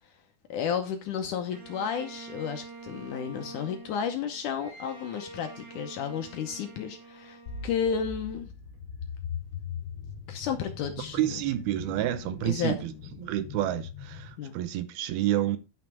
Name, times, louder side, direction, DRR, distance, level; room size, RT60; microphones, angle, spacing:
voice 1, 0.5-8.5 10.3-11.4 12.4-12.8 14.4-14.6, left 7 dB, 70° left, 2.0 m, -32 dB
Bowed string instrument, 1.5-8.8, right 3 dB, 60° right, 2.7 m, -47 dB
sound 1, 7.5-14.3, left 7 dB, 40° left, 2.0 m, -40 dB
voice 2, 11.1-12.9 13.2-15.6, right 13 dB, 80° right, 2.7 m, -29 dB
9.5 x 5.7 x 4.4 m
omnidirectional pair, 4.4 m